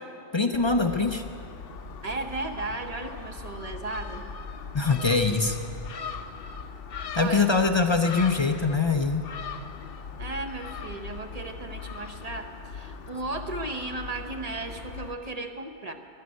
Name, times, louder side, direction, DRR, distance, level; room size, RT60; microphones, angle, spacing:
voice 1, 0.3-1.2 4.7-5.6 7.2-9.2, left 4 dB, 35° left, 6 dB, 0.4 m, -23 dB
Gull seagull, 0.5-15.1, left 5 dB, 60° left, 0.8 m, -40 dB
voice 2, 2.0-4.2 7.2-7.5 10.2-15.9, right 2 dB, 40° right, 5 dB, 0.9 m, -35 dB
11.0 x 11.0 x 9.4 m, 2.7 s
omnidirectional pair, 1.1 m